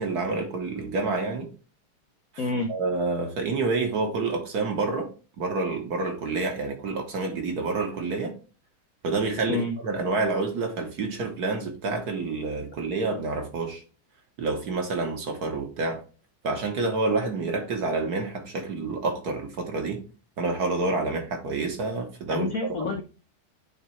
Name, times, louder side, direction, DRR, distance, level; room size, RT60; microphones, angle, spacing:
voice 1, 0.0-1.5 2.7-5.1 5.4-8.3 9.0-13.8 14.4-16.0 16.4-20.0 20.4-22.5 22.8-23.0, right 3 dB, 55° right, 1.4 m, -28 dB
voice 2, 2.4-2.7 9.5-9.7 22.3-23.0, left 3 dB, 75° left, 0.8 m, -28 dB
9.4 x 3.3 x 3.1 m
omnidirectional pair, 2.3 m